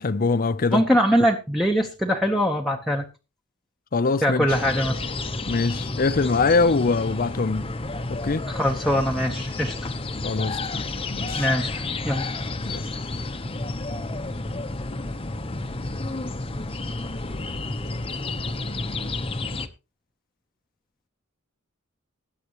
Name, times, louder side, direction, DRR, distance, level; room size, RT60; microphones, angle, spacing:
voice 1, 0.0-0.8 3.9-4.5 5.5-7.7 8.1-8.5 10.2-10.8 11.1-11.5 12.7-12.8, left 3 dB, 45° left, 0.6 m, -23 dB
voice 2, 0.7-3.0 4.2-5.1 8.5-9.9 11.4-12.2, equal, ahead, 1.0 m, -22 dB
sound 1, 4.5-19.7, left 2 dB, 25° left, 0.9 m, -31 dB
20.0 x 8.4 x 3.0 m
head